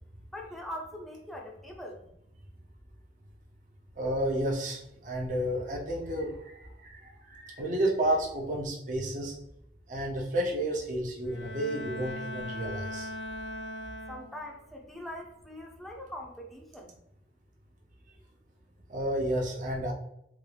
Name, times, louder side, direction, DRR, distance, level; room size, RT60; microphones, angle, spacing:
voice 1, 0.3-2.0 14.1-17.0, left 1 dB, ahead, -1 dB, 0.5 m, -42 dB
voice 2, 4.0-9.3 9.9-13.1 18.9-19.9, right 1 dB, 45° right, -2 dB, 0.7 m, -31 dB
Bowed string instrument, 11.3-14.7, left 1 dB, 70° left, 0.4 m, -40 dB
3.6 x 2.4 x 3.3 m, 0.80 s
head